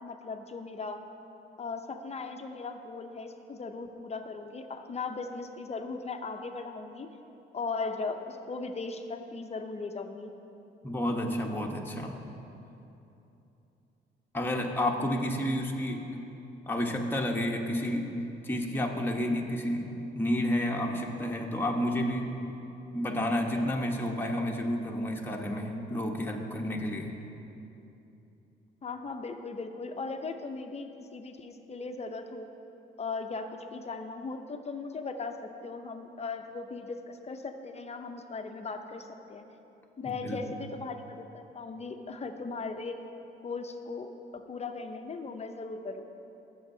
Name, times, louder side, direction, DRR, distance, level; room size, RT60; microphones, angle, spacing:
voice 1, 0.0-1.0 1.6-7.1 7.5-10.3 28.8-32.5 33.0-39.4 40.0-43.0 43.4-46.1, left 4 dB, 35° left, 6 dB, 0.6 m, -38 dB
voice 2, 10.8-12.2 14.3-16.0 16.7-18.1 18.4-19.9 20.1-22.3 22.9-27.1 40.2-40.4, left 1 dB, 10° left, 0 dB, 1.0 m, -30 dB
15.5 x 7.1 x 2.7 m, 2.9 s
cardioid pair, 90°, 20 cm